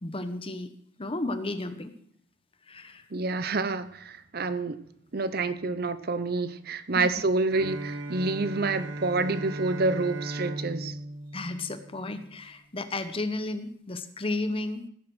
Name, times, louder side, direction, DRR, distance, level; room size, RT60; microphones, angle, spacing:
voice 1, 0.0-0.7 1.0-1.9 2.7-3.1 6.9-7.1 11.3-14.9, left 2 dB, 30° left, 1.0 m, -33 dB
voice 2, 3.1-4.8 5.1-11.0, right 3 dB, 55° right, 0.8 m, -28 dB
Bowed string instrument, 7.5-12.4, right 1 dB, 85° right, 1.4 m, -37 dB
16.5 x 7.4 x 6.3 m
head